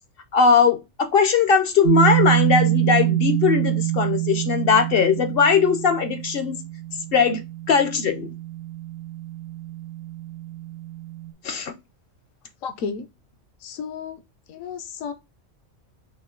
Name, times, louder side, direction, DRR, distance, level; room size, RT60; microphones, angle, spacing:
voice 1, 0.3-6.6 7.1-7.4 7.7-8.3 11.4-11.7, left 5 dB, 55° left, 0.7 m, -19 dB
sound 1, 1.8-11.3, right 15 dB, 70° right, 1.0 m, -26 dB
voice 2, 12.6-13.1 13.6-14.2 14.5-15.1, left 5 dB, 80° left, 1.1 m, -32 dB
5.3 x 2.2 x 3.6 m
omnidirectional pair, 1.4 m